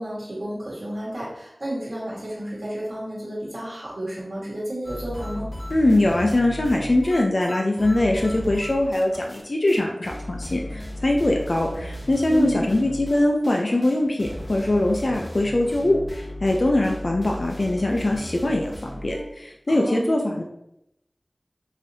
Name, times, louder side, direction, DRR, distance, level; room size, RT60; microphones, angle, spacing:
voice 1, 0.0-5.5 12.3-12.7 19.7-20.2, right 1 dB, 80° right, -9 dB, 1.3 m, -31 dB
sound 1, 4.8-9.4 9.7-9.8 10.0-19.3, equal, 20° left, 0.8 m, -36 dB
voice 2, 5.7-20.4, left 1 dB, 65° left, 1 dB, 0.4 m, -22 dB
4.9 x 2.7 x 2.7 m, 0.82 s
wide cardioid pair, 55°, 0 cm